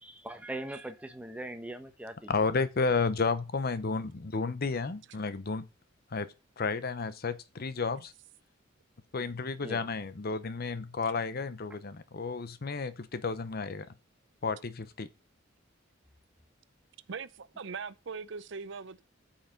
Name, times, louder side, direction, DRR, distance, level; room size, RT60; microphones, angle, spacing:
voice 1, 0.0-2.3 9.6-9.9, right 1 dB, 5° right, 1.1 m, -41 dB
voice 2, 2.3-5.7 6.1-6.3 6.6-8.1 9.1-13.9 14.4-15.1, left 4 dB, 50° left, 0.8 m, -32 dB
voice 3, 17.1-19.0, right 5 dB, 65° right, 0.6 m, -40 dB
13.0 x 5.7 x 3.9 m
head